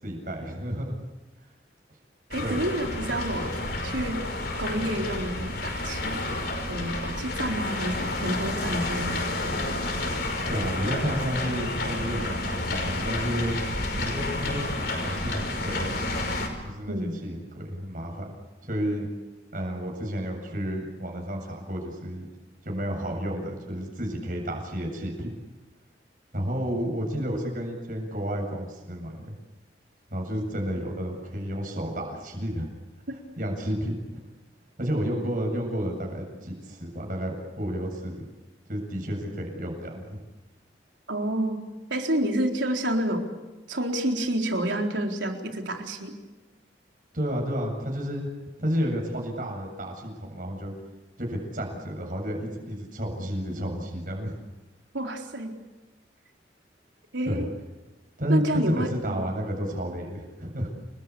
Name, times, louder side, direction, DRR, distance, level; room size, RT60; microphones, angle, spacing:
voice 1, 0.0-1.0 2.4-2.6 10.5-13.6 13.9-15.9 16.6-18.3 18.6-19.1 19.5-22.3 22.6-25.3 26.3-29.4 30.1-32.7 33.4-34.2 34.8-38.2 38.7-40.2 47.1-48.3 48.6-50.7 51.2-54.3 57.2-57.5 58.2-60.7, equal, 45° right, 1 dB, 7.8 m, -31 dB
sound 1, 2.3-16.5, left 2 dB, 60° left, 5.8 m, -30 dB
voice 2, 2.3-3.5 3.8-4.2 4.6-6.2 6.7-9.2 16.9-17.1 41.1-41.6 41.9-43.2 43.7-46.1 54.9-55.5 57.1-57.5 58.3-59.2, right 1 dB, 85° right, 2 dB, 4.1 m, -29 dB
30.0 x 21.0 x 8.6 m, 1.1 s
head